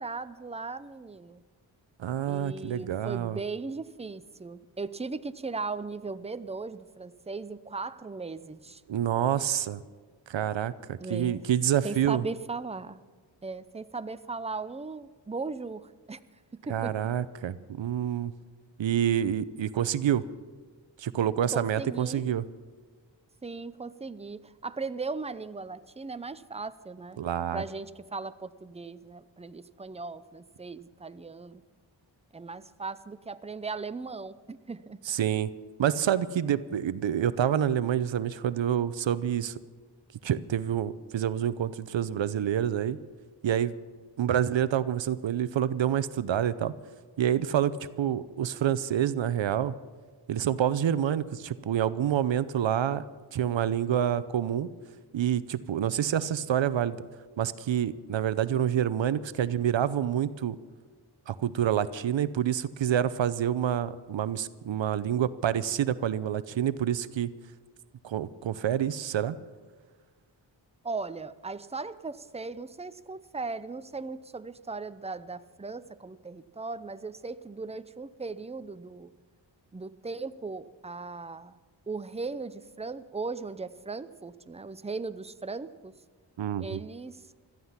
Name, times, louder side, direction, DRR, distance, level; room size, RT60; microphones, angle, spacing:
voice 1, 0.0-1.4 2.3-8.8 11.0-11.4 11.8-13.0 13.4-16.2 16.5-17.0 21.5-22.3 23.4-27.2 27.5-31.7 32.3-35.0 70.8-79.1 79.7-81.6 81.9-85.9 86.6-87.3, right 4 dB, 15° right, 13 dB, 0.6 m, -38 dB
voice 2, 2.0-3.4 8.9-9.8 10.3-12.2 16.7-18.3 18.8-20.2 21.0-22.4 27.2-27.6 35.1-35.5 35.8-39.6 40.2-43.0 43.4-43.7 44.2-46.7 47.2-49.7 50.3-53.0 53.3-54.7 55.1-57.0 57.4-60.6 61.3-67.3 68.0-69.4 86.4-86.8, right 10 dB, 75° right, 15 dB, 0.7 m, -27 dB
17.5 x 13.5 x 5.8 m, 1.5 s
wide cardioid pair, 100°, 46 cm